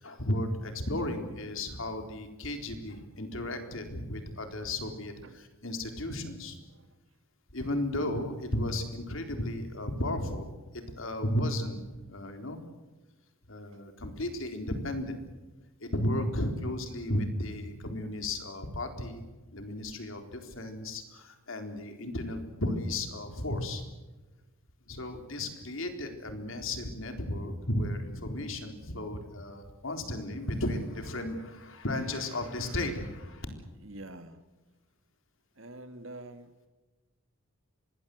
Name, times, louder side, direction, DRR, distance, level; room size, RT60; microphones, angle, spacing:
voice 1, 0.0-6.6 7.5-10.5 10.7-12.6 13.5-15.2 15.8-19.2 19.5-23.8 24.9-33.5, left 1 dB, 65° left, 6 dB, 3.9 m, -34 dB
voice 2, 33.8-34.4 35.6-36.5, right 2 dB, 65° right, 9 dB, 1.8 m, -46 dB
25.0 x 20.5 x 7.9 m, 1.2 s
head